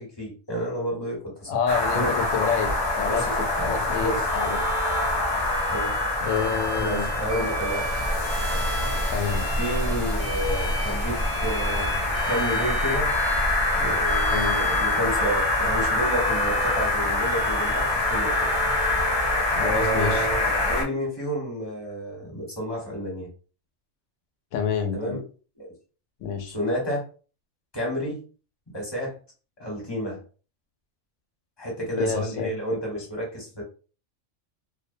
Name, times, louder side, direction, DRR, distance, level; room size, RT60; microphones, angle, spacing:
voice 1, 0.0-1.6 1.9-2.1 3.0-4.3 5.7-6.0 6.8-7.9 9.6-13.1 13.7-18.5 19.5-23.3 24.9-25.2 25.6-25.7 26.5-27.1 27.7-28.2 28.7-29.2 29.6-30.2 31.6-33.6, right 1 dB, 20° left, -3 dB, 1.0 m, -30 dB
voice 2, 1.5-3.2 3.6-4.6 6.2-7.1 9.1-9.4 14.3-14.6 19.5-20.3 24.5-25.2 26.2-26.6 32.0-32.5, left 7 dB, 80° left, 5 dB, 0.9 m, -28 dB
sound 1, 1.7-20.8, left 2 dB, 45° left, 0.3 m, -25 dB
Bowed string instrument, 4.3-19.5, right 3 dB, 90° right, 1.0 m, -37 dB
2.4 x 2.1 x 2.6 m, 0.37 s
omnidirectional pair, 1.3 m